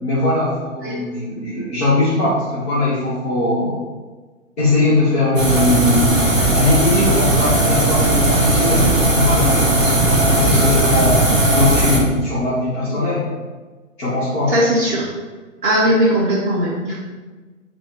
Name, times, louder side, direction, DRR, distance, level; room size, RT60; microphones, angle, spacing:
voice 1, 0.0-3.7 4.6-11.2 11.5-13.2 14.0-14.5, left 2 dB, ahead, -20 dB, 0.3 m, -20 dB
sound 1, 5.4-12.0, right 1 dB, 75° right, 1.2 m, -16 dB
voice 2, 14.5-15.1 15.6-17.0, equal, 40° right, -5 dB, 1.5 m, -18 dB
4.3 x 2.2 x 4.6 m, 1.3 s
figure-of-eight pair, 120°, 39 cm